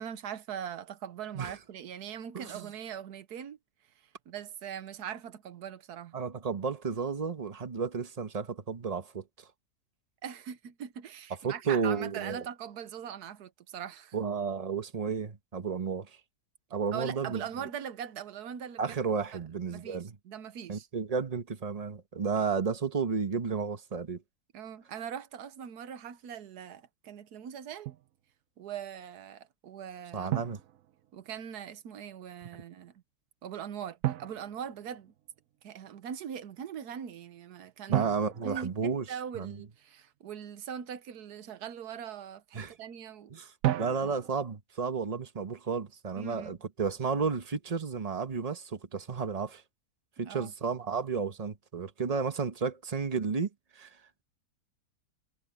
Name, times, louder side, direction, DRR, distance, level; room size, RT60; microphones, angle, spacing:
voice 1, 0.0-3.6 4.3-6.2 10.2-14.2 16.9-19.0 19.3-19.4 19.7-20.9 24.5-27.9 28.6-30.4 31.1-32.9 33.4-35.1 35.6-38.1 38.4-43.3 44.0-44.1 46.2-46.6 50.2-50.5, right 8 dB, 85° right, 1.5 m, -41 dB
voice 2, 2.3-2.7 6.1-9.2 11.4-12.4 14.1-16.1 16.7-17.7 18.8-20.1 20.7-24.2 30.1-30.6 37.9-39.0 39.3-39.6 42.5-42.7 43.3-43.5 43.8-49.6 50.2-53.5 53.7-53.9, right 5 dB, 25° right, 1.1 m, -32 dB
Drum, 27.9-28.1 30.3-31.5 34.0-35.4 37.9-39.6 43.6-44.6, right 14 dB, 65° right, 1.0 m, -34 dB
omnidirectional pair, 1.6 m